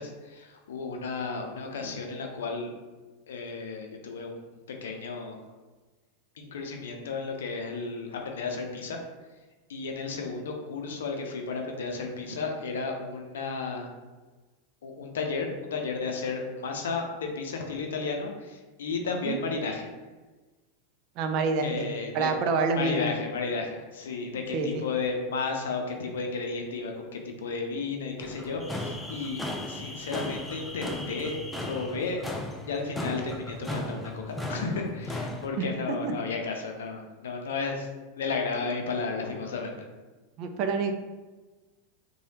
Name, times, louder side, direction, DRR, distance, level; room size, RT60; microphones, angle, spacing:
voice 1, 0.0-2.7 3.3-5.4 6.4-9.0 9.7-13.9 14.8-19.9 21.6-22.3 22.7-29.4 29.7-32.2 32.6-37.9 38.1-39.8, left 4 dB, 80° left, 2 dB, 0.5 m, -33 dB
voice 2, 21.2-23.1 24.5-24.8 35.6-36.1 40.4-40.9, right 4 dB, 50° right, 5 dB, 0.4 m, -28 dB
sound 1, 28.2-35.5, left 1 dB, 10° left, 0.4 m, -36 dB
3.2 x 2.2 x 2.8 m, 1.3 s
hypercardioid pair, 95°, 0 cm